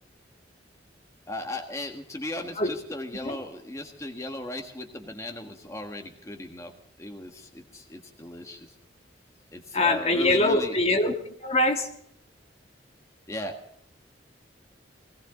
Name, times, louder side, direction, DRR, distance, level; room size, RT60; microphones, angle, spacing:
voice 1, 1.3-6.7 7.0-8.7 9.5-10.8 13.3-13.6, left 1 dB, 15° left, 3 dB, 1.5 m, -37 dB
voice 2, 9.7-11.1 11.4-11.9, left 2 dB, 35° left, 4 dB, 1.6 m, -23 dB
20.0 x 17.5 x 3.9 m, 0.69 s
head